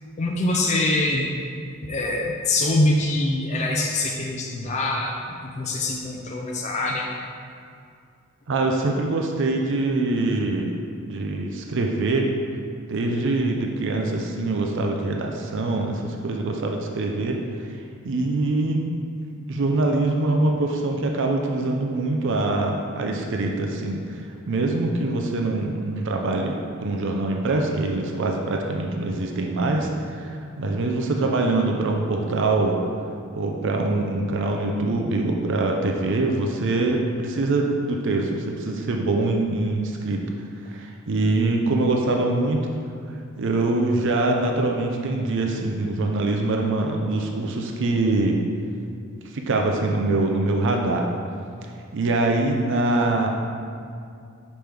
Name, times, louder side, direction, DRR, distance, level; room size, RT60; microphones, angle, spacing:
voice 1, 0.2-1.2 1.8-5.2 5.4-7.1, left 2 dB, 35° left, -1 dB, 0.4 m, -24 dB
voice 2, 8.5-10.8 11.1-12.3 12.9-17.7 18.0-18.9 19.5-32.8 33.3-40.2 40.7-42.7 43.4-48.4 49.3-51.1 51.9-53.3, right 2 dB, 60° right, 2 dB, 0.5 m, -24 dB
5.9 x 5.2 x 3.3 m, 2.4 s
head